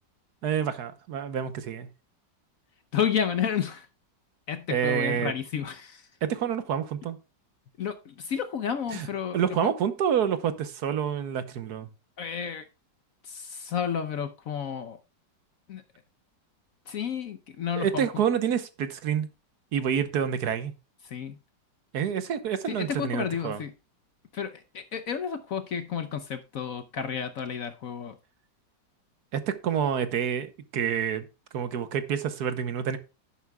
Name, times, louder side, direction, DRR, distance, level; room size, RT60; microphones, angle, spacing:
voice 1, 0.4-1.9 4.7-5.3 6.2-7.2 8.9-9.1 9.3-11.9 17.8-19.3 19.7-20.7 21.9-23.6 29.3-31.2 31.5-33.0, right 8 dB, 65° right, 11 dB, 1.3 m, -28 dB
voice 2, 2.9-3.9 4.5-6.1 7.8-9.7 12.2-12.7 13.2-15.0 15.7-15.8 16.9-18.1 21.0-21.4 22.6-23.7 24.3-28.2, left 8 dB, 60° left, 9 dB, 1.0 m, -31 dB
11.0 x 10.5 x 2.3 m, 0.29 s
omnidirectional pair, 2.0 m